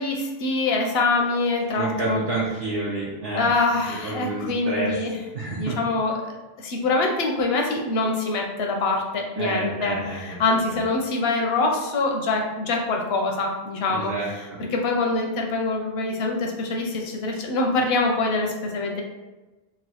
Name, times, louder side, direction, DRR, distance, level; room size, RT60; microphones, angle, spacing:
voice 1, 0.0-2.2 3.3-5.2 5.6-6.2 6.6-19.0, left 3 dB, 80° left, 1 dB, 0.8 m, -24 dB
voice 2, 1.8-3.5 3.9-4.9 5.3-5.8 9.4-10.8 13.9-14.6, right 2 dB, 70° right, -6 dB, 0.8 m, -29 dB
3.0 x 2.3 x 2.9 m, 1.1 s
omnidirectional pair, 1.0 m